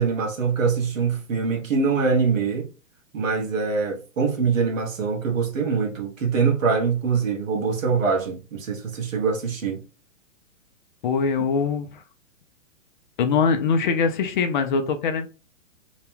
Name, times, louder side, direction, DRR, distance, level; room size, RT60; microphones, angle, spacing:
voice 1, 0.0-2.7 3.1-9.8, right 5 dB, 80° right, 1.1 m, -23 dB
voice 2, 11.0-12.0 13.2-15.3, left 5 dB, 40° left, 0.4 m, -22 dB
2.9 x 2.1 x 3.1 m
hypercardioid pair, 120°, 39 cm